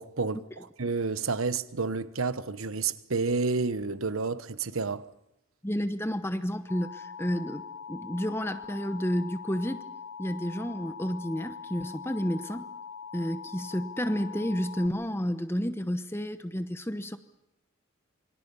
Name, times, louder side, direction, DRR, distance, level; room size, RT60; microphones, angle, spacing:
voice 1, 0.0-5.0, right 4 dB, 85° right, 1.1 m, -30 dB
voice 2, 5.6-9.8 10.2-12.7 13.1-17.2, equal, 10° left, 1.0 m, -31 dB
Alarm, 6.7-14.9, left 6 dB, 80° left, 1.3 m, -43 dB
27.5 x 24.5 x 5.6 m
head